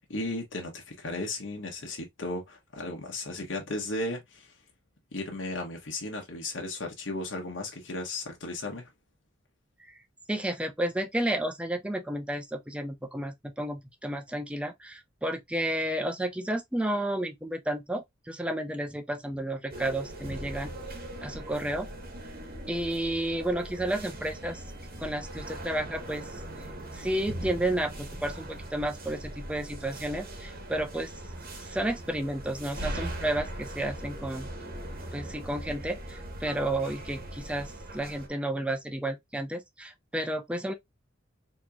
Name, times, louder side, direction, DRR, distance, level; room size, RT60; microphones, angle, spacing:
voice 1, 0.1-4.5 5.1-8.9, left 2 dB, 70° left, 1.3 m, -35 dB
voice 2, 10.3-20.7 21.2-21.9 22.7-24.6 25.0-26.4 26.9-31.1 31.7-34.5 35.1-40.7, right 1 dB, 5° right, 0.5 m, -32 dB
sound 1, 19.7-38.3, right 1 dB, 50° right, 1.1 m, -40 dB
4.3 x 2.9 x 2.2 m
head